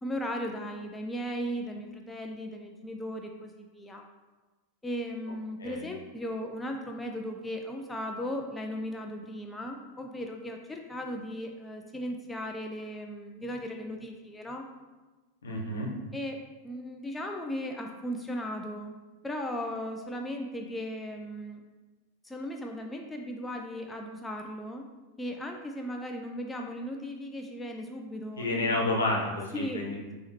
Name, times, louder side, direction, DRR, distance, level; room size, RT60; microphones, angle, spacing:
voice 1, 0.0-4.1 4.8-14.7 16.1-19.0 19.2-21.6 22.2-24.9 25.2-28.8 29.5-29.8, equal, 10° left, 2 dB, 0.4 m, -37 dB
voice 2, 15.4-15.9 28.4-30.1, left 2 dB, 70° left, -1 dB, 0.9 m, -30 dB
5.4 x 2.9 x 3.1 m, 1.2 s
figure-of-eight pair, 90°, 0 cm